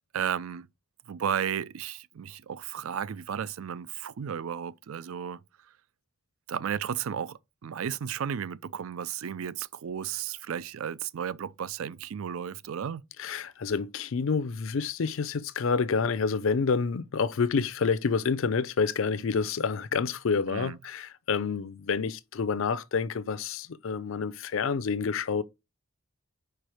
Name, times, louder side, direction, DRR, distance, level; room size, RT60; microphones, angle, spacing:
voice 1, 0.1-0.7 1.1-5.4 6.5-13.1 20.5-20.8, right 8 dB, 85° right, 0.4 m, -34 dB
voice 2, 13.2-25.4, left 5 dB, 70° left, 0.5 m, -28 dB
5.0 x 4.6 x 4.8 m
head